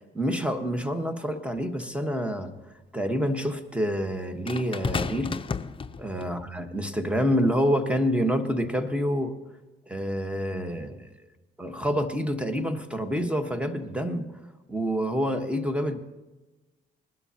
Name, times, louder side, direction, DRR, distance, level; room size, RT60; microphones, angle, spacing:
voice 1, 0.1-2.5 2.9-5.4 6.0-9.3 9.9-11.1 11.6-14.3 14.7-16.0, equal, 5° right, 7 dB, 1.3 m, -27 dB
sound 1, 1.6-1.7 4.5-6.4 7.3-7.5, left 5 dB, 25° left, 0.6 m, -32 dB
20.0 x 12.0 x 2.9 m, 1.1 s
cardioid pair, 90°, 20 cm